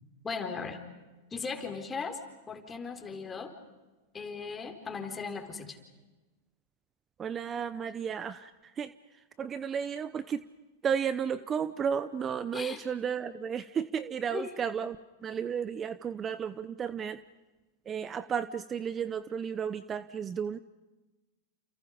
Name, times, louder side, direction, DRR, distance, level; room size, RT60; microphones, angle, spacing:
voice 1, 0.2-0.8 1.3-2.2 2.5-3.5 4.1-5.8 12.5-12.8 14.3-14.5, left 5 dB, 20° left, 5 dB, 4.3 m, -37 dB
voice 2, 7.2-8.5 8.8-8.9 9.4-10.4 10.8-15.0 15.2-17.2 17.9-20.6, right 7 dB, 25° right, 14 dB, 0.9 m, -33 dB
29.5 x 29.0 x 5.2 m, 1.2 s
hypercardioid pair, 110°, 0 cm